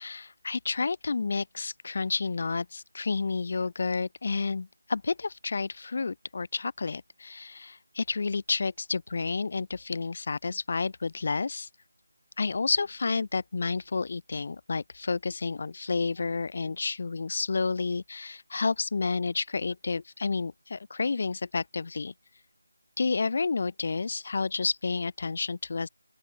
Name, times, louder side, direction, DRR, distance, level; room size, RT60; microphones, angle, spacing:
voice 1, 0.0-11.7 12.4-22.1 23.0-25.9, left 4 dB, 45° left, 0.6 m, -30 dB
open air
figure-of-eight pair, 165°, 0 cm